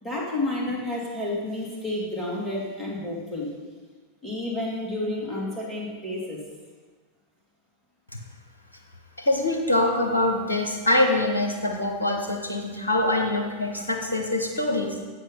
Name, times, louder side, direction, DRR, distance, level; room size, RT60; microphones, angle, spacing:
voice 1, 0.0-3.5 4.2-6.4, left 1 dB, 5° left, -5 dB, 2.6 m, -30 dB
voice 2, 9.2-15.0, left 1 dB, 75° left, 2 dB, 1.0 m, -24 dB
8.0 x 7.6 x 3.8 m, 1.4 s
figure-of-eight pair, 90°, 0 cm